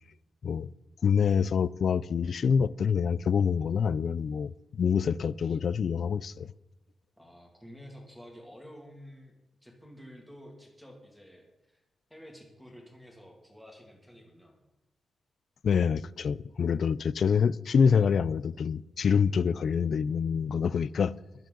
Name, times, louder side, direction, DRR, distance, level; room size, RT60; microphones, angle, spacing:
voice 1, 1.0-6.5 15.6-21.1, left 6 dB, 50° left, 0.3 m, -26 dB
voice 2, 7.2-9.3 9.6-11.8 12.1-14.6, equal, ahead, 2.3 m, -50 dB
21.5 x 7.6 x 3.9 m
wide cardioid pair, 170°, 0 cm